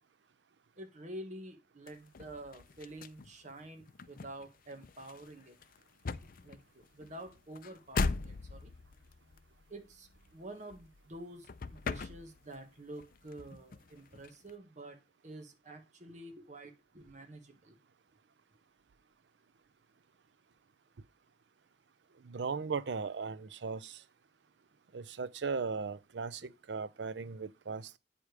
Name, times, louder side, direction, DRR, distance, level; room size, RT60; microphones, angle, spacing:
voice 1, 0.8-5.6 6.4-8.7 9.7-17.8 26.4-26.5, right 1 dB, 45° right, 1.5 m, -48 dB
sound 1, 1.9-11.2 11.4-12.7 13.0-14.5, left 4 dB, 55° left, 0.5 m, -40 dB
voice 2, 22.2-24.0 24.9-28.0, right 5 dB, 90° right, 0.5 m, -37 dB
8.7 x 5.0 x 4.8 m
head